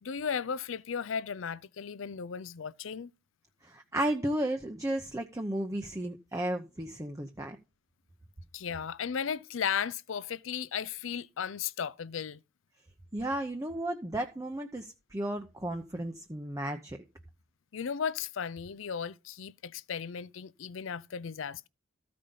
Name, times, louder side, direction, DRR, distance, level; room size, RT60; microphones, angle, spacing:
voice 1, 0.0-3.1 8.5-12.4 17.7-21.7, left 7 dB, 65° left, 0.5 m, -35 dB
voice 2, 3.6-7.6 13.1-17.0, right 1 dB, 15° right, 0.7 m, -34 dB
14.0 x 5.2 x 5.5 m
head